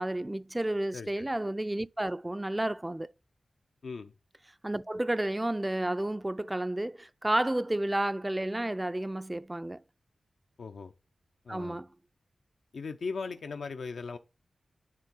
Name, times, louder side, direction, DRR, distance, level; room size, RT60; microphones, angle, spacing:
voice 1, 0.0-3.1 4.6-9.8 11.5-11.9, right 1 dB, 20° right, 0.4 m, -31 dB
voice 2, 0.9-1.3 3.8-4.1 10.6-10.9 11.4-11.8 12.7-14.2, left 4 dB, 80° left, 0.5 m, -38 dB
9.7 x 3.9 x 6.0 m
cardioid pair, 50°, 0 cm